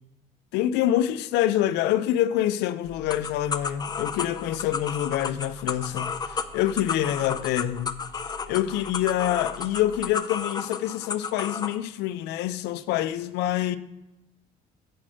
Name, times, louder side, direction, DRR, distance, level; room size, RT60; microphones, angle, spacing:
voice 1, 0.5-8.0 8.5-13.8, left 12 dB, 85° left, 0.5 m, -26 dB
sound 1, 2.8-10.2, right 1 dB, 45° right, 0.6 m, -48 dB
sound 2, 3.1-11.8, left 5 dB, 25° left, 0.4 m, -32 dB
7.6 x 4.3 x 6.2 m
cardioid pair, 110°, 17 cm